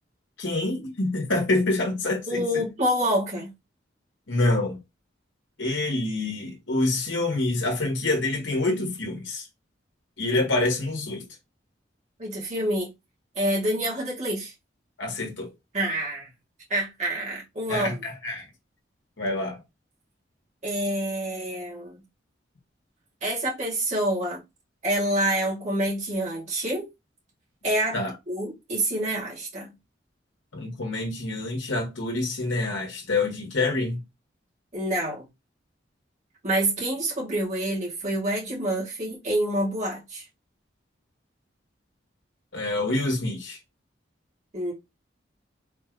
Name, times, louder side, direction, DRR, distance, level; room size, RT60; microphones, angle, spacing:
voice 1, 0.4-2.4 4.3-4.8 5.6-9.4 10.2-11.2 15.0-15.5 17.7-18.4 19.2-19.6 27.9-28.1 30.5-34.0 42.5-43.6, left 2 dB, 85° left, 1.4 m, -26 dB
voice 2, 2.3-3.5 12.2-12.9 13.4-14.5 15.7-16.3 16.7-18.0 20.6-22.0 23.2-24.4 24.8-26.9 27.6-28.0 28.3-29.7 34.7-35.3 36.4-40.2 44.5-44.7, right 1 dB, 40° right, 2.1 m, -27 dB
4.3 x 3.2 x 2.5 m
head